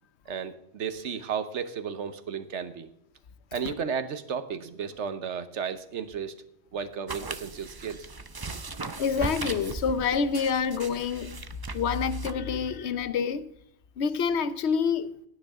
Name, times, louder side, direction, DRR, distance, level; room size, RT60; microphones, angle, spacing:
voice 1, 0.3-2.9 3.5-6.3 6.7-8.1 8.5-8.6, right 7 dB, 65° right, 1.2 m, -33 dB
sound 1, 7.1-12.3, right 3 dB, 30° right, 0.4 m, -38 dB
voice 2, 9.0-11.4 11.7-13.5 14.0-15.1, left 6 dB, 60° left, 1.0 m, -27 dB
17.0 x 9.8 x 3.6 m
omnidirectional pair, 1.3 m